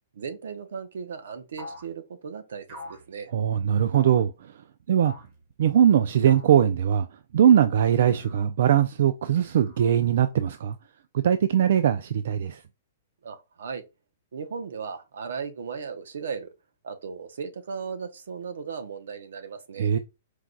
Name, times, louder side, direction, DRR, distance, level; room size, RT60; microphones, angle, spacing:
voice 1, 0.1-3.3 13.2-13.8 14.3-16.5 16.8-19.9, right 6 dB, 80° right, 0.8 m, -36 dB
sound 1, 1.6-1.9 2.7-3.1 3.9-4.2 5.0-5.4 6.3-6.6 8.0-8.5 9.4-10.1, left 2 dB, 35° right, 1.2 m, -44 dB
voice 2, 3.3-4.3 4.9-5.1 5.6-7.1 7.3-10.8 11.1-12.6 19.8-20.0, right 9 dB, 60° right, 0.3 m, -21 dB
4.6 x 2.2 x 3.8 m
hypercardioid pair, 170°, 0 cm